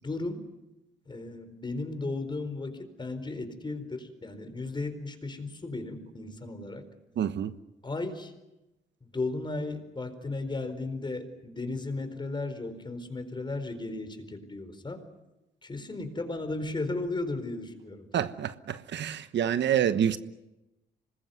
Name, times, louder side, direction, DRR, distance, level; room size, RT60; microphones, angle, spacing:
voice 1, 0.0-0.4 1.1-6.8 7.8-8.3 9.1-15.0 15.6-18.1, left 2 dB, 25° left, 4.4 m, -35 dB
voice 2, 7.2-7.5 18.1-20.2, right 9 dB, 65° right, 1.2 m, -27 dB
25.5 x 20.5 x 9.4 m
cardioid pair, 90°, 20 cm